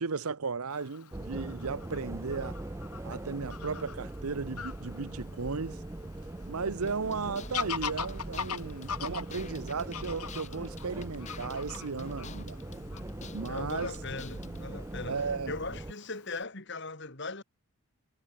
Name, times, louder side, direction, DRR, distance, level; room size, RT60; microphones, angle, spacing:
voice 1, 0.0-2.5 3.0-5.8 6.5-12.6 13.3-13.9 15.1-15.5, right 4 dB, 80° right, 0.9 m, -35 dB
Fowl / Bird vocalization bird call bird song, 0.7-16.4, left 6 dB, 90° left, 2.6 m, -43 dB
sound 1, 1.1-15.9, right 1 dB, 15° right, 0.4 m, -41 dB
sound 2, 6.9-14.7, left 5 dB, 30° left, 1.3 m, -51 dB
voice 2, 13.4-17.4, left 3 dB, 50° left, 2.8 m, -39 dB
head